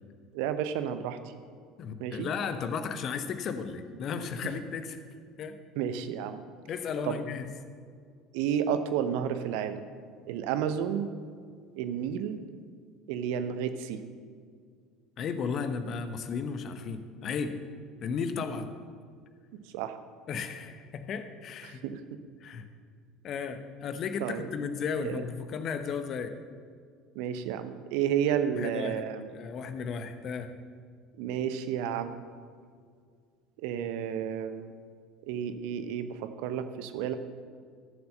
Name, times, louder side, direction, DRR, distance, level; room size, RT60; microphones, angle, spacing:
voice 1, 0.3-1.2 2.0-2.3 5.8-6.4 7.0-7.2 8.3-9.8 10.3-11.1 11.8-12.4 13.1-14.0 19.7-20.0 21.6-22.0 24.2-24.5 25.0-25.2 27.1-29.2 31.2-32.2 33.6-34.7 35.3-37.1, right 9 dB, 60° right, 10 dB, 0.8 m, -31 dB
voice 2, 1.8-5.0 5.4-5.6 6.7-7.5 15.2-17.6 18.0-18.7 20.3-21.8 22.4-22.6 23.2-26.4 28.5-30.5, left 6 dB, 45° left, 9 dB, 0.9 m, -34 dB
14.0 x 7.0 x 6.4 m, 2.1 s
figure-of-eight pair, 65°, 0 cm